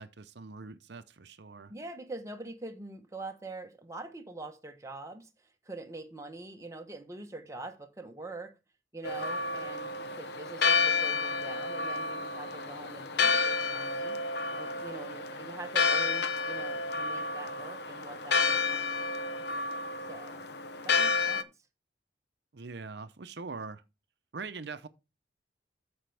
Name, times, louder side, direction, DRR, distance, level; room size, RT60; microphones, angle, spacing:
voice 1, 0.0-1.7 22.5-23.8 24.3-24.9, right 4 dB, 65° right, 0.6 m, -42 dB
voice 2, 1.7-8.6 8.9-14.2 14.5-19.0 20.1-20.5 20.8-21.5, right 2 dB, 15° right, 1.0 m, -44 dB
Church bell, 9.0-21.4, left 4 dB, 60° left, 0.6 m, -30 dB
13.5 x 5.2 x 3.4 m
head